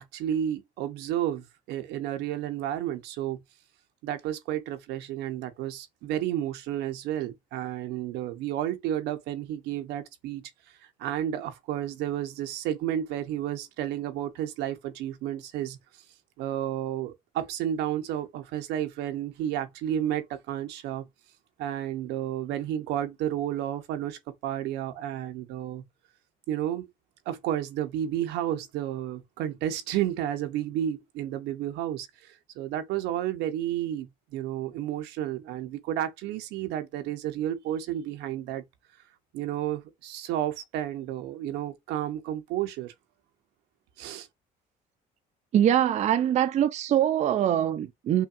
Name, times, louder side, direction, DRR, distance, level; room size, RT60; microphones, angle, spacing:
voice 1, 0.0-3.4 4.0-10.5 11.0-15.8 16.4-21.1 21.6-25.9 26.5-26.9 27.3-38.6 39.3-42.9 44.0-44.3, right 11 dB, 90° right, 0.7 m, -31 dB
voice 2, 45.5-48.3, right 10 dB, 45° right, 0.4 m, -23 dB
5.6 x 2.2 x 2.4 m
cardioid pair, 110°, 17 cm